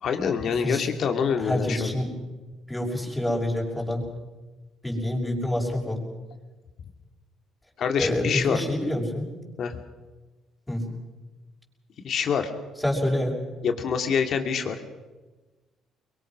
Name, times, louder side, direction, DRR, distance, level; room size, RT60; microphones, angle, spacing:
voice 1, 0.0-2.0 7.8-8.6 9.6-9.8 12.0-12.5 13.6-14.8, left 6 dB, 60° left, 6 dB, 2.6 m, -26 dB
voice 2, 1.4-2.1 2.7-4.1 4.8-6.0 7.9-9.3 10.7-10.8 12.8-13.3, left 1 dB, 10° left, -1 dB, 6.3 m, -27 dB
23.5 x 22.5 x 6.2 m, 1.2 s
cardioid pair, 90°, 0 cm